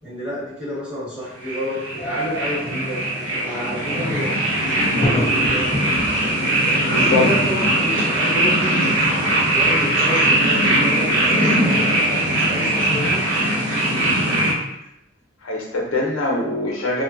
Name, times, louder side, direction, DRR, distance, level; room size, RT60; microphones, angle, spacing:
voice 1, 0.0-3.0 3.4-5.7 6.1-6.5 7.0-9.1 9.5-13.2, equal, 5° right, -10 dB, 1.0 m, -30 dB
sound 1, 1.4-14.5, right 1 dB, 75° right, 0.9 m, -20 dB
sound 2, 1.9-7.2, equal, 30° left, 0.4 m, -30 dB
voice 2, 6.9-7.3 15.4-17.0, left 2 dB, 85° left, -1 dB, 0.6 m, -23 dB
3.2 x 2.1 x 2.5 m, 0.88 s
head